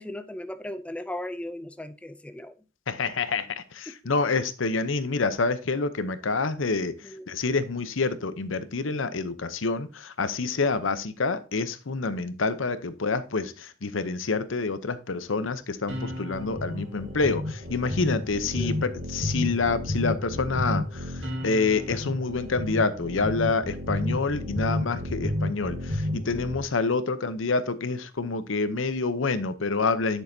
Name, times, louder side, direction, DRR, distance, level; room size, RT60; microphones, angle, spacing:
voice 1, 0.0-2.5 3.9-4.0 7.0-7.3 18.5-18.9, left 1 dB, 5° left, 0.4 m, -37 dB
voice 2, 2.9-6.9 7.3-30.2, left 4 dB, 85° left, 0.8 m, -27 dB
sound 1, 15.9-26.6, left 1 dB, 70° right, 2.0 m, -31 dB
10.5 x 6.4 x 2.8 m
head